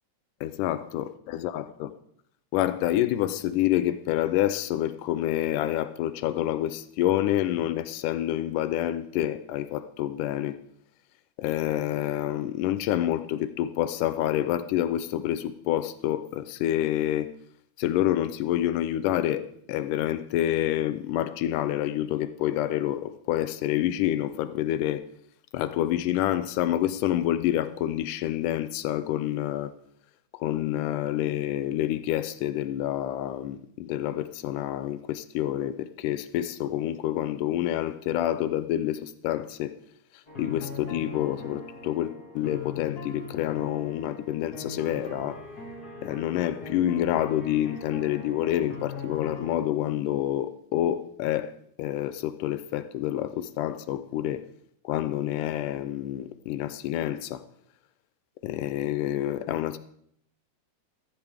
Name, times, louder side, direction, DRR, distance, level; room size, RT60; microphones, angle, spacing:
voice 1, 0.4-1.9 2.5-10.6 11.4-17.3 17.8-25.0 25.5-29.7 30.3-39.7 40.1-45.4 46.0-54.4 54.8-57.4 58.4-59.8, left 12 dB, 90° left, 2.2 m, -28 dB
sound 1, 40.3-49.5, left 3 dB, 35° left, 2.2 m, -40 dB
15.0 x 14.0 x 3.5 m
omnidirectional pair, 3.6 m